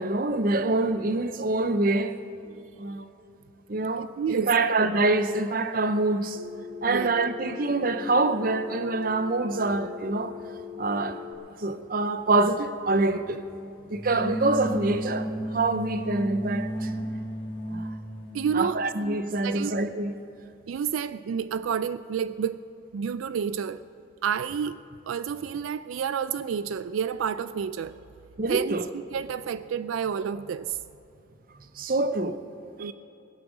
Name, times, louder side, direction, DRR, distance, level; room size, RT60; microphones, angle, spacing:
voice 1, 0.0-2.2 2.8-3.1 3.7-6.4 6.8-10.4 10.8-11.2 11.6-13.4 13.8-16.9 17.7-17.9 18.5-20.1 28.4-28.8 31.8-32.4 32.8-32.9, right 2 dB, 45° right, 0.7 m, -25 dB
voice 2, 4.0-4.5 6.9-7.1 18.3-19.7 20.7-22.6 22.9-23.8 24.2-24.8 25.1-28.0 28.5-28.8 29.1-30.8 32.8-32.9, right 7 dB, 90° right, 0.3 m, -30 dB
Telephone, 6.3-11.3, left 7 dB, 65° right, 1.2 m, -40 dB
sound 1, 13.9-18.7, equal, 45° left, 3.6 m, -33 dB
19.5 x 8.5 x 6.2 m
head